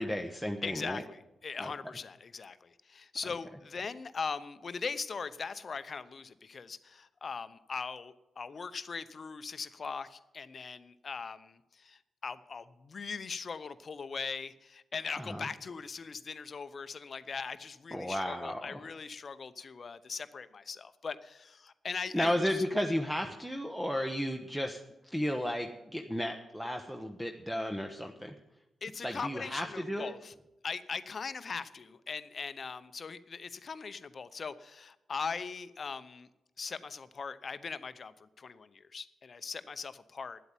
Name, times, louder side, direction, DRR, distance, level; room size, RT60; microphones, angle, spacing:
voice 1, 0.0-1.0 1.6-1.7 3.2-3.3 15.2-15.5 17.9-18.8 22.1-28.3 29.0-30.1, equal, 5° right, 4 dB, 1.2 m, -34 dB
voice 2, 0.6-22.3 28.8-30.3 30.6-36.3 36.6-40.4, left 5 dB, 50° left, 14 dB, 0.8 m, -40 dB
10.5 x 8.0 x 9.0 m, 0.94 s
hypercardioid pair, 40°, 0 cm